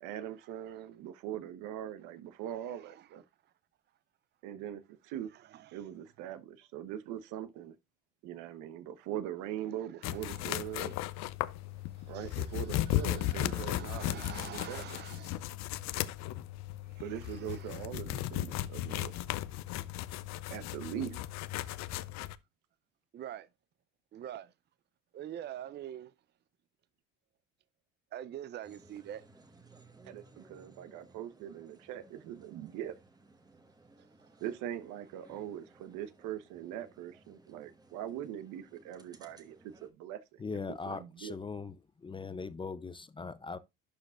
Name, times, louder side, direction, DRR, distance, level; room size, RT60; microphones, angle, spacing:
voice 1, 0.0-3.2 4.4-5.3 5.7-7.7 8.2-10.9 12.0-14.8 17.0-19.1 20.5-21.2 30.0-33.0 34.4-40.4 40.8-41.3, right 11 dB, 75° right, 1.0 m, -41 dB
sound 1, 10.0-22.3, left 14 dB, 60° left, 0.6 m, -36 dB
voice 2, 12.0-12.3 13.0-15.4 17.0-17.7 21.1-21.2 23.1-23.5 24.1-24.5 25.1-26.1 28.1-29.2, right 11 dB, 35° right, 0.5 m, -45 dB
sound 2, 28.6-39.9, right 2 dB, 15° right, 1.2 m, -60 dB
voice 3, 40.4-41.7 42.0-43.6, left 4 dB, 15° left, 0.5 m, -40 dB
11.5 x 5.0 x 2.4 m
cardioid pair, 105°, 30 cm